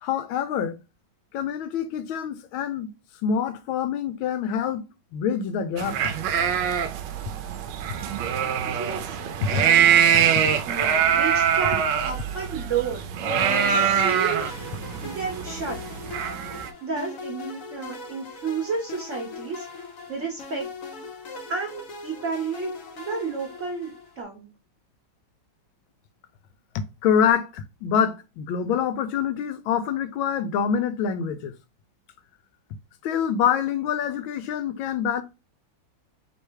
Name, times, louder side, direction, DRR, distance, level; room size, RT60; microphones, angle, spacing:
voice 1, 0.0-0.8 1.3-2.9 3.2-4.8 5.1-6.1 14.3-14.4 27.0-31.5 33.0-35.2, left 8 dB, 80° left, 1.3 m, -26 dB
sound 1, 5.8-16.7, right 8 dB, 75° right, 1.1 m, -23 dB
voice 2, 8.6-9.2 9.4-9.9 10.7-14.8 15.0-15.8 16.8-20.7 21.5-24.5, right 5 dB, 45° right, 1.1 m, -32 dB
sound 2, 13.5-24.2, left 4 dB, 55° left, 0.9 m, -40 dB
3.4 x 3.2 x 4.5 m
omnidirectional pair, 2.2 m